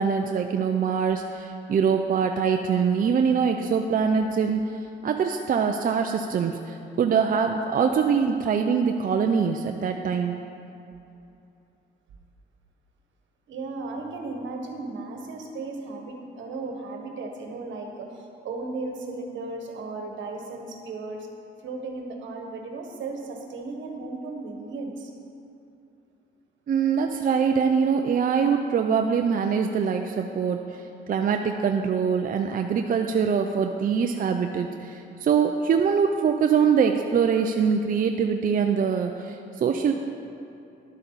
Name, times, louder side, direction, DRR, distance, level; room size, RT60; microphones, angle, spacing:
voice 1, 0.0-10.4 26.7-39.9, right 6 dB, 45° right, 4 dB, 0.5 m, -23 dB
voice 2, 13.5-21.3 21.6-25.1, right 3 dB, 75° right, 2 dB, 1.4 m, -35 dB
11.5 x 8.3 x 4.1 m, 2.7 s
cardioid pair, 90°, 20 cm